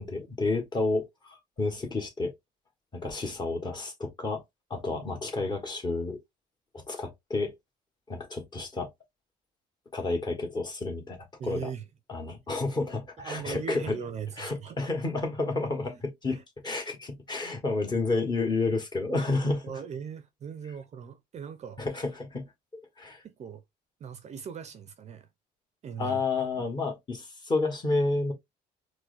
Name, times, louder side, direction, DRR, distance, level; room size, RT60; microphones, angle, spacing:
voice 1, 0.0-2.3 2.9-4.4 4.7-6.2 6.7-7.5 8.1-8.9 9.9-11.7 12.1-14.0 14.4-19.7 21.8-22.5 23.0-23.2 26.0-28.3, left 3 dB, 25° left, 1.3 m, -30 dB
voice 2, 11.4-11.8 13.2-14.8 15.9-16.0 16.3-16.4 19.6-21.8 23.2-23.6 24.0-25.3 25.8-26.2 26.5-26.7, right 7 dB, 40° right, 0.5 m, -39 dB
4.6 x 2.1 x 2.4 m
cardioid pair, 110°, 17 cm